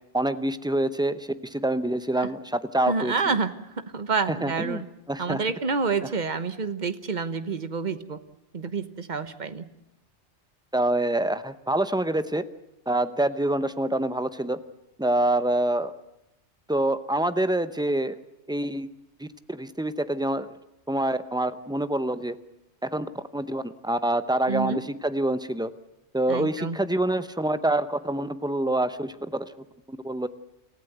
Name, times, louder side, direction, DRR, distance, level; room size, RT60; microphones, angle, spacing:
voice 1, 0.1-3.3 4.4-4.8 5.1-5.4 10.7-12.5 12.9-14.6 15.0-15.9 16.7-18.1 18.5-18.9 19.2-20.5 20.9-22.3 22.8-25.7 26.1-29.5 29.9-30.3, right 1 dB, 5° right, 12 dB, 0.6 m, -26 dB
voice 2, 2.9-3.5 3.9-4.9 5.2-8.2 8.5-9.6 24.5-24.8 26.3-26.8, right 4 dB, 40° right, 12 dB, 1.2 m, -28 dB
28.0 x 14.5 x 8.0 m, 0.93 s
omnidirectional pair, 1.2 m